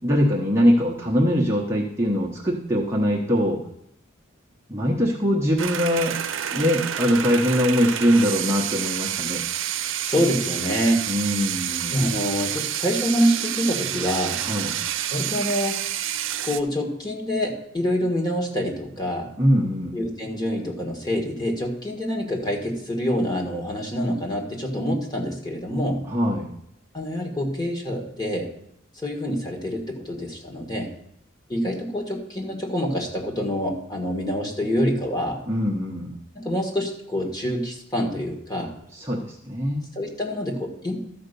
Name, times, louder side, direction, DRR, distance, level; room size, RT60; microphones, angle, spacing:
voice 1, 0.0-3.6 4.7-6.2 6.5-9.4 11.1-12.1 14.4-14.7 19.4-19.9 26.1-26.5 35.5-36.2 38.9-39.9, equal, 15° right, -3 dB, 1.0 m, -22 dB
sound 1, 5.6-16.6, right 10 dB, 75° right, 0.6 m, -29 dB
voice 2, 10.0-11.0 11.9-14.4 15.1-15.8 16.4-19.3 19.9-26.1 26.9-28.5 28.9-30.9 31.5-35.4 36.3-38.7 39.9-41.0, equal, 20° left, 2 dB, 1.7 m, -26 dB
12.5 x 5.1 x 6.8 m, 0.73 s
head